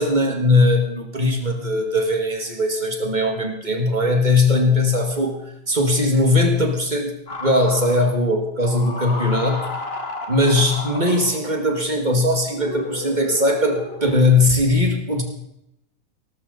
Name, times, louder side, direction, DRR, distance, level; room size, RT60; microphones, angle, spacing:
voice 1, 0.0-9.7 10.3-15.2, left 2 dB, 30° right, 3 dB, 2.3 m, -19 dB
sound 1, 7.3-8.2 8.6-11.6 12.5-14.2, left 2 dB, 45° left, 2.0 m, -32 dB
18.5 x 13.5 x 4.2 m, 0.81 s
omnidirectional pair, 1.5 m